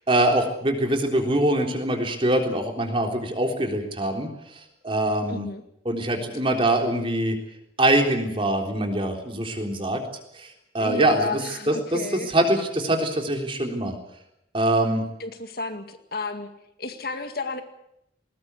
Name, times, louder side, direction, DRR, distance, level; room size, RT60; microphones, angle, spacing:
voice 1, 0.1-4.3 4.8-5.5 5.9-7.4 7.8-10.0 10.4-10.5 10.7-11.3 11.7-11.8 12.3-14.0 14.5-15.0, right 1 dB, 30° right, 3 dB, 3.7 m, -23 dB
voice 2, 5.3-5.6 10.8-12.3 15.2-16.5 16.8-17.6, left 3 dB, 55° left, 7 dB, 2.0 m, -32 dB
20.0 x 20.0 x 8.3 m, 0.78 s
head